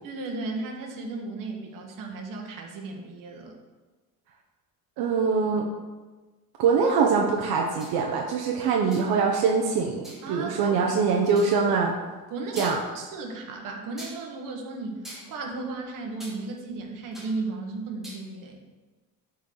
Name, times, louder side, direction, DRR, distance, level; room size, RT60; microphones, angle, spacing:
voice 1, 0.0-3.6 10.2-10.8 12.3-18.7, right 3 dB, 60° right, 1 dB, 1.4 m, -35 dB
voice 2, 5.0-5.7 6.6-11.9 12.6-12.8, right 5 dB, 85° right, 0 dB, 0.9 m, -23 dB
sound 1, 7.8-8.0 8.9-9.2 10.0-10.3 11.3-11.6 12.2-12.3 12.5-13.1 14.0-14.2 15.0-16.4 16.7-17.4 17.7-18.2, right 1 dB, ahead, 1.5 m, -43 dB
12.0 x 4.6 x 3.9 m, 1.3 s
cardioid pair, 175°, 36 cm